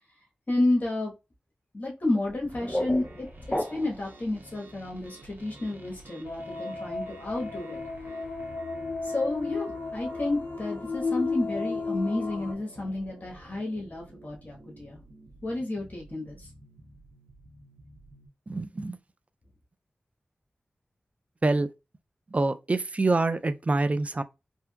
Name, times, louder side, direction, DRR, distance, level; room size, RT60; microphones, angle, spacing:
voice 1, 0.5-1.1 1.7-3.3 3.7-7.8 9.0-15.0 15.4-16.5, left 2 dB, 50° left, 1.2 m, -31 dB
sound 1, 2.2-4.2, equal, 15° left, 0.6 m, -33 dB
sound 2, 2.5-18.3, right 2 dB, 70° right, 0.8 m, -51 dB
sound 3, 6.2-12.5, left 4 dB, 75° left, 0.5 m, -33 dB
voice 2, 18.5-19.0 21.4-21.7 22.3-24.2, right 2 dB, 35° right, 0.4 m, -26 dB
3.4 x 2.7 x 2.3 m
cardioid pair, 50°, 4 cm